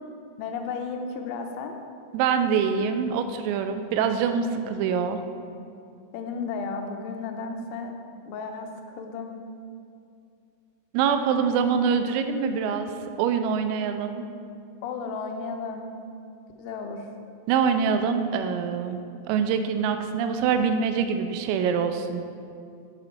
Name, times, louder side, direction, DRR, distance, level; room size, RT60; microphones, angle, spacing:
voice 1, 0.4-1.8 6.1-7.9 8.3-9.3 14.8-15.9 16.6-17.1, left 4 dB, 85° left, 4 dB, 3.4 m, -33 dB
voice 2, 2.1-5.2 10.9-12.9 13.2-14.3 17.5-19.0 19.3-22.2, right 6 dB, 90° right, 8 dB, 3.3 m, -24 dB
9.8 x 7.2 x 4.4 m, 2.4 s
omnidirectional pair, 5.9 m